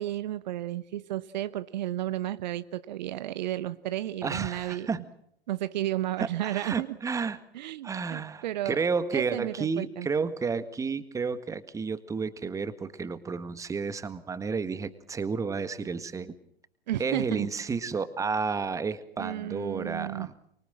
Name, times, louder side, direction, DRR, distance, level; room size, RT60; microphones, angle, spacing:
voice 1, 0.0-4.9 5.5-7.0 7.5-8.8 9.1-10.1 16.9-17.5 19.2-20.3, right 13 dB, 45° right, 14 dB, 1.1 m, -33 dB
voice 2, 4.2-5.1 6.2-7.4 7.8-16.3 17.0-20.3, right 5 dB, 10° right, 14 dB, 1.7 m, -31 dB
28.0 x 25.0 x 7.6 m, 0.70 s
figure-of-eight pair, 105°, 30 cm